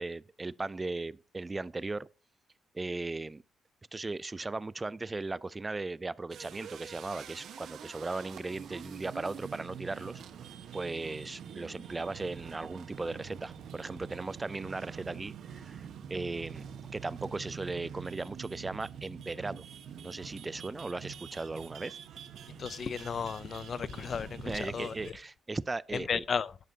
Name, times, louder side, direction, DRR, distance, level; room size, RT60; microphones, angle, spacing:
voice 1, 0.0-2.1 2.7-3.4 3.9-10.2 10.7-16.6 16.9-19.6 20.0-22.0 24.4-26.2, right 3 dB, 20° right, 0.4 m, -37 dB
sound 1, 6.3-25.3, right 7 dB, 70° right, 1.2 m, -46 dB
sound 2, 12.9-25.0, right 10 dB, 90° right, 1.1 m, -61 dB
voice 2, 22.6-25.1 25.9-26.6, left 6 dB, 45° left, 0.5 m, -34 dB
11.5 x 11.0 x 2.8 m
cardioid pair, 90°, 0 cm